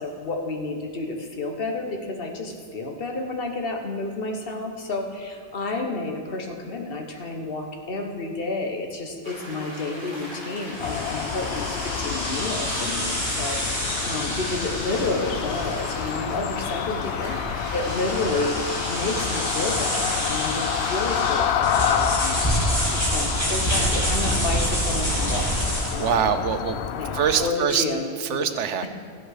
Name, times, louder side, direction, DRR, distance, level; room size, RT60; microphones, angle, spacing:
voice 1, 0.0-18.6 18.9-26.3 27.0-28.5, left 3 dB, 55° left, 3 dB, 1.5 m, -30 dB
sound 1, 9.2-22.6, equal, 25° right, 4.0 m, -39 dB
sound 2, 10.7-26.1, right 1 dB, 20° left, 3.2 m, -28 dB
sound 3, 10.8-27.5, left 9 dB, 70° left, 0.8 m, -29 dB
voice 2, 26.0-26.8 27.1-27.8 28.2-28.9, right 8 dB, 85° right, 10 dB, 1.1 m, -23 dB
14.5 x 7.9 x 6.5 m, 2.3 s
omnidirectional pair, 1.2 m